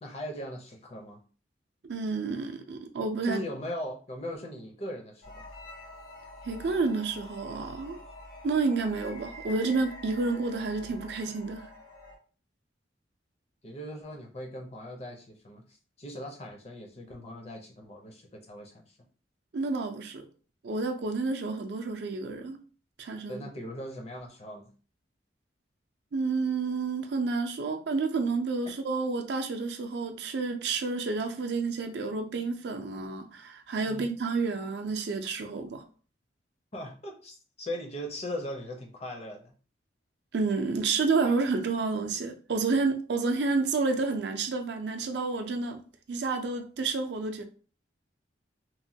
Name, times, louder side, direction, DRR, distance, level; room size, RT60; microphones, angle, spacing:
voice 1, 0.0-1.2 3.2-5.4 13.6-15.6 16.0-18.9 23.3-24.7 33.8-34.1 36.7-39.5, equal, 35° left, 0.5 m, -39 dB
voice 2, 1.8-3.4 6.4-8.0 8.4-11.7 19.5-20.3 20.6-22.6 23.0-23.4 26.1-35.8 40.3-45.8 46.1-47.4, right 4 dB, 65° right, 0.4 m, -30 dB
sound 1, 5.2-12.2, left 1 dB, 75° left, 1.5 m, -46 dB
3.0 x 2.2 x 2.7 m
head